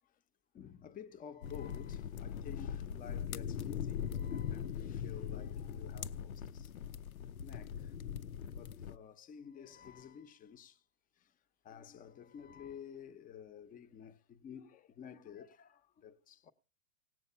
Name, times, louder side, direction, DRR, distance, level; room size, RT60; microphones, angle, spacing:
voice 1, 0.5-6.7 7.4-7.9 8.5-10.8 11.6-16.5, left 8 dB, 20° left, 1.0 m, -52 dB
sound 1, 1.4-9.0, left 8 dB, 80° left, 0.9 m, -41 dB
18.0 x 7.8 x 5.7 m
hypercardioid pair, 125°, 42 cm